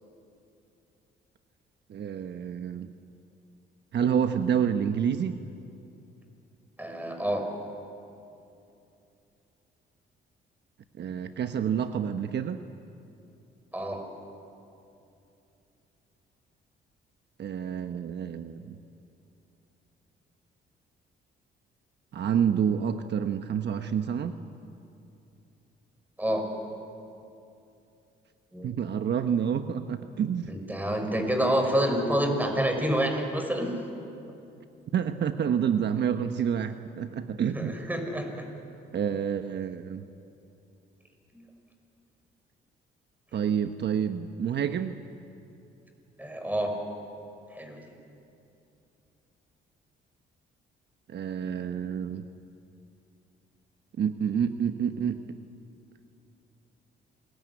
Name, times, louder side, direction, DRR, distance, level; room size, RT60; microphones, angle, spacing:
voice 1, 1.9-2.9 3.9-5.4 11.0-12.6 17.4-18.8 22.1-24.3 28.6-30.5 34.9-37.8 38.9-40.0 43.3-44.9 51.1-52.3 54.0-55.4, right 8 dB, 60° right, 7 dB, 1.1 m, -28 dB
voice 2, 6.8-7.4 13.7-14.0 26.2-26.4 28.5-28.7 30.5-33.7 37.5-38.3 41.3-41.4 46.2-46.7 47.5-47.8, equal, 10° right, 4 dB, 5.8 m, -28 dB
27.5 x 21.5 x 9.8 m, 2.7 s
cardioid pair, 90°, 20 cm